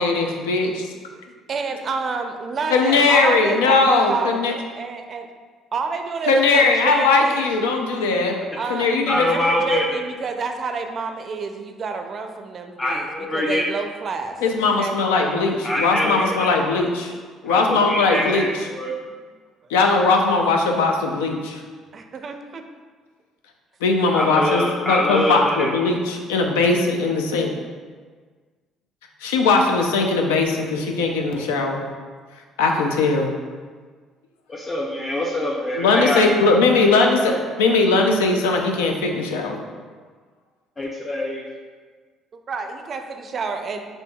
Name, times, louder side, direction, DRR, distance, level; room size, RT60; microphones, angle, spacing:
voice 1, 0.0-0.7 2.7-4.5 6.3-8.4 8.7-9.3 14.4-17.1 17.4-18.5 19.7-21.6 23.8-27.5 29.2-31.8 32.6-33.3 35.8-39.6, left 3 dB, 90° left, 3 dB, 0.4 m, -19 dB
voice 2, 1.5-5.3 5.7-7.6 8.6-8.9 9.3-15.0 21.9-22.6 42.3-43.8, right 5 dB, 50° right, 5 dB, 0.4 m, -29 dB
voice 3, 9.1-10.0 12.8-13.6 15.6-16.5 17.5-18.9 24.1-25.7 34.5-36.5 40.8-41.5, left 1 dB, 25° left, -3 dB, 0.5 m, -24 dB
5.1 x 2.6 x 2.3 m, 1.5 s
hypercardioid pair, 65°, 0 cm